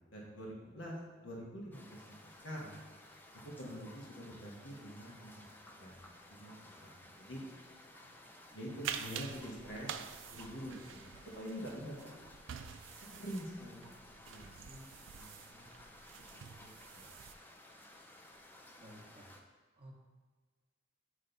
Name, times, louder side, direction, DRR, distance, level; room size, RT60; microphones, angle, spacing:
voice 1, 0.0-2.8 3.3-5.4 5.8-6.0 6.3-7.8 8.5-9.9 10.3-12.0 12.9-15.9 16.3-17.1, equal, 70° left, -2 dB, 1.4 m, -46 dB
sound 1, 1.7-19.4, left 1 dB, 10° left, 0.5 m, -57 dB
sound 2, 8.8-17.3, right 8 dB, 70° right, 0.4 m, -47 dB
voice 2, 18.8-19.3 19.8-19.9, equal, 30° right, -2 dB, 1.1 m, -54 dB
8.7 x 3.2 x 3.9 m, 1.4 s
head